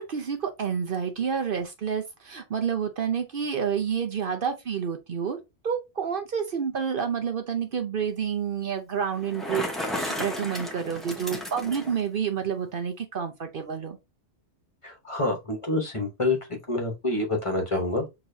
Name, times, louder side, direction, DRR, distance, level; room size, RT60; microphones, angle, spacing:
voice 1, 0.0-5.4 5.6-9.6 9.9-14.0, right 7 dB, 55° right, 0.8 m, -29 dB
Bicycle, 9.2-12.0, left 1 dB, ahead, 0.9 m, -33 dB
voice 2, 14.8-16.4 16.7-18.1, left 2 dB, 30° left, 1.1 m, -27 dB
6.5 x 2.9 x 2.7 m
omnidirectional pair, 1.2 m